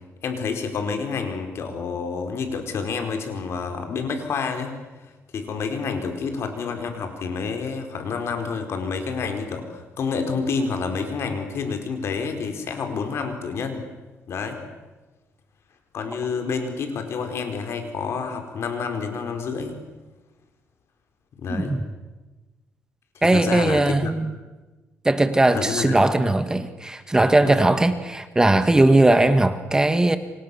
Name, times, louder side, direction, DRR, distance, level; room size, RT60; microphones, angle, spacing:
voice 1, 0.2-4.7 5.0-13.8 14.3-14.6 15.9-19.8 21.4-21.8 23.1-24.1 25.5-26.0 27.4-27.6, left 5 dB, 60° left, 6 dB, 4.5 m, -28 dB
voice 2, 23.2-24.3 25.0-30.2, right 2 dB, 15° right, 10 dB, 1.5 m, -19 dB
29.0 x 25.5 x 7.0 m, 1.2 s
cardioid pair, 115°, 5 cm